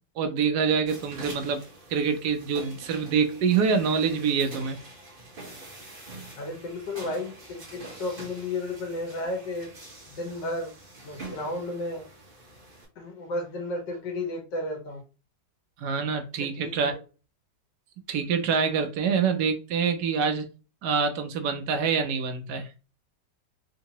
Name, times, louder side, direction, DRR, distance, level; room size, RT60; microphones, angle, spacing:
voice 1, 0.2-1.6 1.9-4.8 15.8-16.9 18.1-20.4 20.8-22.7, right 6 dB, 70° right, 1.1 m, -25 dB
sound 1, 0.9-12.9, right 2 dB, 35° right, 1.0 m, -45 dB
voice 2, 6.4-9.7 10.1-10.7 11.0-12.0 13.0-15.0 16.4-16.8, left 2 dB, 75° left, 1.7 m, -33 dB
3.7 x 2.7 x 2.8 m
omnidirectional pair, 1.9 m